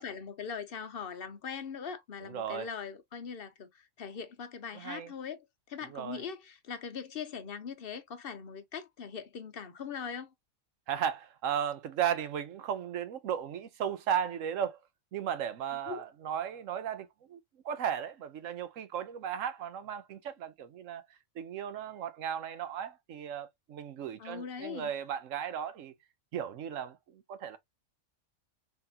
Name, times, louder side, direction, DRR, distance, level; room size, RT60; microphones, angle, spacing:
voice 1, 0.0-3.7 4.0-10.3 15.9-16.0 24.2-24.9, left 6 dB, 55° left, 0.8 m, -41 dB
voice 2, 2.2-2.7 4.7-5.1 5.9-6.2 10.9-14.8 15.1-17.4 17.6-21.0 21.4-25.9 26.3-27.6, right 9 dB, 90° right, 1.1 m, -35 dB
3.6 x 3.5 x 2.7 m
omnidirectional pair, 1.3 m